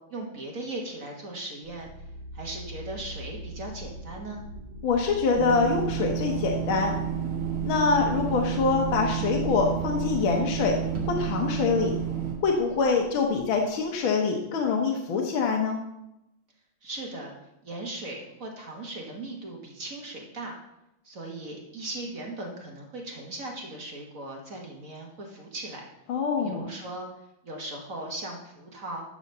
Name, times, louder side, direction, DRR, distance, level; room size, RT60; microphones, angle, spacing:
voice 1, 0.1-1.9 2.3-4.4 16.8-17.3 17.6-20.5 21.0-25.8 26.4-27.1 27.4-29.0, right 2 dB, 45° right, 0 dB, 1.7 m, -38 dB
sound 1, 1.6-13.9, right 1 dB, 60° right, 2.0 m, -41 dB
voice 2, 4.8-6.9 7.6-10.8 11.1-11.9 12.4-15.8 26.1-26.7, left 5 dB, 70° left, 1 dB, 1.8 m, -25 dB
sound 2, 5.4-12.3, right 9 dB, 75° right, 2.5 m, -30 dB
11.0 x 4.1 x 6.6 m, 0.87 s
omnidirectional pair, 2.3 m